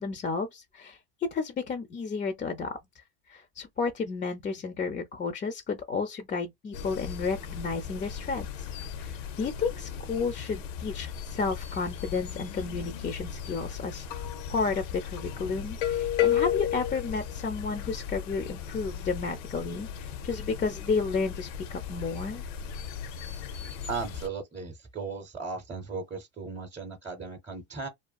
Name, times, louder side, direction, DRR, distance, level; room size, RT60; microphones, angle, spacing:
voice 1, 0.0-2.8 3.3-8.7 9.0-22.5, left 4 dB, 25° left, 0.3 m, -32 dB
sound 1, 6.7-24.3, left 9 dB, 80° left, 0.6 m, -35 dB
voice 2, 23.9-27.9, right 4 dB, 15° right, 0.6 m, -36 dB
2.5 x 2.3 x 2.3 m
supercardioid pair, 100°, 36 cm